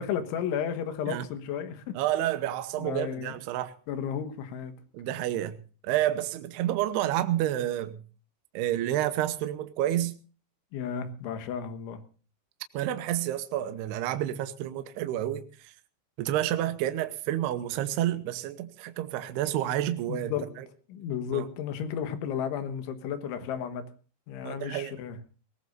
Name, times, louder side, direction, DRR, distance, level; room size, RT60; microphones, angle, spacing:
voice 1, 0.0-2.0 2.8-3.4 3.9-4.7 10.7-12.0 20.1-20.6 20.9-23.8 24.3-25.2, left 8 dB, 85° left, 3.8 m, -33 dB
voice 2, 2.0-3.7 4.9-5.6 5.8-8.0 8.5-10.1 12.7-15.7 16.2-20.7 21.3-21.5 24.4-25.0, right 13 dB, 75° right, 2.7 m, -29 dB
21.5 x 18.5 x 2.6 m
omnidirectional pair, 5.3 m